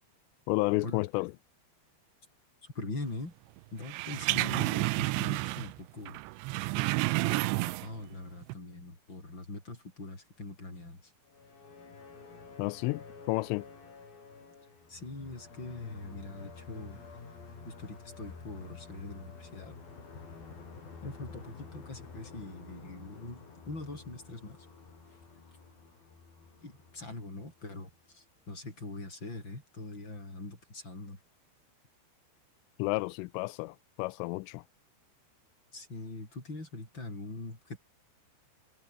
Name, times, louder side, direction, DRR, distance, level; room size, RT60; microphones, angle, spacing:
voice 1, 0.5-1.3 12.6-13.7 32.8-34.6, left 22 dB, 90° left, 3.2 m, -31 dB
voice 2, 2.6-3.3 3.7-6.2 7.2-11.0 14.9-17.0 17.7-19.7 21.0-24.6 26.6-31.2 35.7-37.8, left 2 dB, 20° left, 8.4 m, -42 dB
sound 1, 3.9-5.8 6.1-8.1 8.4-8.5, right 21 dB, 85° right, 2.8 m, -30 dB
sound 2, 11.3-28.1, left 4 dB, 50° left, 8.1 m, -50 dB
omnidirectional pair, 5.6 m